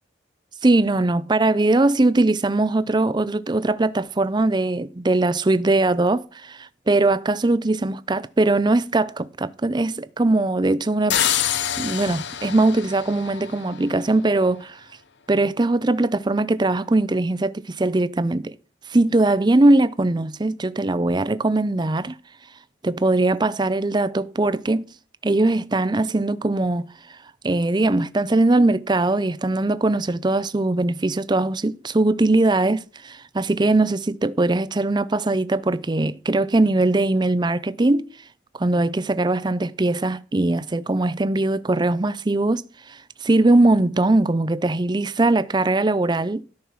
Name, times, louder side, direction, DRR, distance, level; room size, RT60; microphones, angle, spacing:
voice 1, 0.6-11.2 11.8-14.8 15.3-18.6 18.9-22.2 22.8-24.9 25.2-27.2 27.4-38.1 38.5-46.4, right 2 dB, 25° right, 0.5 m, -21 dB
sound 1, 11.1-14.0, left 10 dB, 70° left, 0.9 m, -26 dB
13.0 x 6.4 x 5.7 m
head